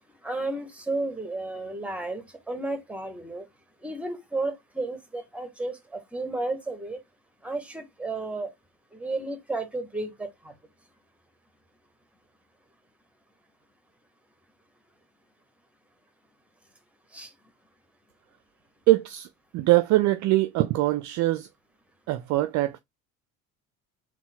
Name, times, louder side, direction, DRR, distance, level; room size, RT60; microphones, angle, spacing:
voice 1, 0.2-3.4 3.8-7.0 7.4-8.5 8.9-10.5 17.1-17.3, right 2 dB, 5° right, 1.1 m, -33 dB
voice 2, 18.9-19.3 19.5-21.5 22.1-22.8, right 17 dB, 45° right, 0.4 m, -22 dB
3.8 x 2.2 x 4.0 m
figure-of-eight pair, 60°, 42 cm